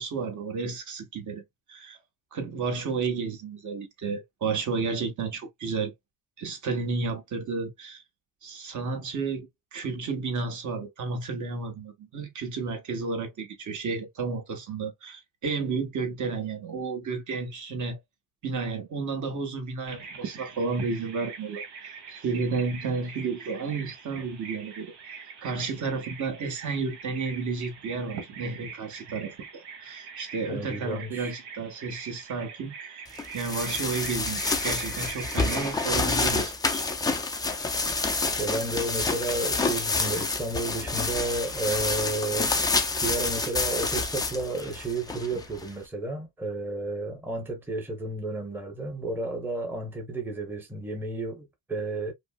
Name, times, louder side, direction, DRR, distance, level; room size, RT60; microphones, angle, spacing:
voice 1, 0.0-1.4 1.7-2.0 2.3-5.9 6.4-8.0 8.4-18.0 18.4-33.0 33.3-36.8, right 4 dB, 45° right, 1.1 m, -32 dB
Bird vocalization bird call bird song, 19.9-35.9, right 6 dB, 75° right, 1.6 m, -42 dB
voice 2, 30.5-31.3 38.4-42.5 43.0-52.1, right 2 dB, 5° right, 0.8 m, -32 dB
sound 1, 33.2-45.7, left 3 dB, 10° left, 0.3 m, -28 dB
5.1 x 2.0 x 2.2 m
cardioid pair, 160°, 41 cm